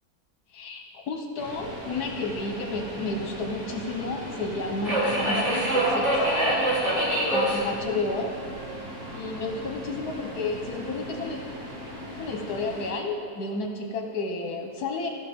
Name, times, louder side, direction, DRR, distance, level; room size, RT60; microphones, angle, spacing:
voice 1, 0.5-6.2 7.1-8.3 9.1-11.4 12.1-15.1, left 3 dB, 70° left, 2 dB, 1.6 m, -31 dB
Subway metro underground, 1.4-12.9, right 1 dB, 45° right, 2.4 m, -30 dB
15.0 x 6.3 x 3.7 m, 2.3 s
omnidirectional pair, 1.7 m